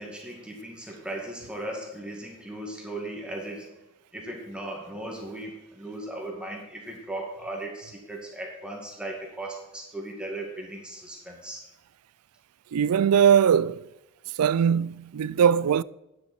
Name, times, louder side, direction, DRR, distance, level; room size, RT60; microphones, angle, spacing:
voice 1, 0.0-3.8 4.1-11.6, right 1 dB, 5° right, 2.0 m, -37 dB
voice 2, 12.7-13.8 14.4-15.8, right 8 dB, 85° right, 0.4 m, -20 dB
12.0 x 9.5 x 4.3 m
head